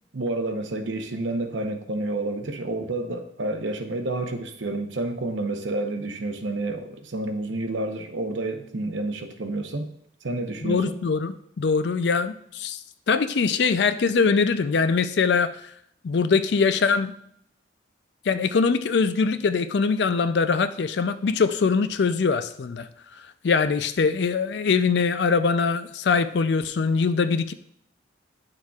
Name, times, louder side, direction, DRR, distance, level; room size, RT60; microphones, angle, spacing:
voice 1, 0.1-9.9 10.2-11.0, right 2 dB, 80° right, 6 dB, 0.8 m, -29 dB
voice 2, 10.6-12.8 13.1-15.6 16.0-17.1 18.3-22.9 23.4-27.5, left 5 dB, 65° left, 11 dB, 0.4 m, -22 dB
9.6 x 6.4 x 2.4 m, 0.69 s
head